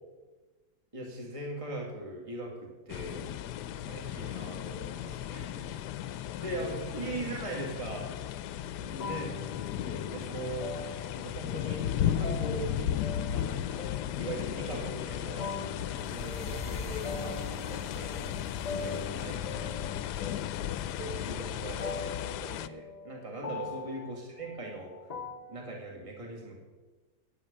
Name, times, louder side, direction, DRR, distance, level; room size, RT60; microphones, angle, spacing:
voice 1, 0.9-3.2 3.8-5.4 6.4-8.1 8.8-9.3 9.7-10.7 11.2-12.7 13.3-13.9 14.2-15.5 16.1-18.2 18.7-19.7 21.0-24.9 25.5-26.6, right 2 dB, 20° right, -1 dB, 2.3 m, -40 dB
sound 1, 2.9-22.7, left 10 dB, 85° left, 1.2 m, -35 dB
voice 2, 5.3-7.8 8.7-9.2 19.0-20.1 23.4-24.0, right 1 dB, 75° right, -4 dB, 6.1 m, -54 dB
sound 2, 9.0-25.6, left 4 dB, 40° left, 0.6 m, -42 dB
sound 3, 15.9-20.9, left 3 dB, 5° right, 2.0 m, -46 dB
14.5 x 10.0 x 5.4 m, 1.2 s
omnidirectional pair, 1.7 m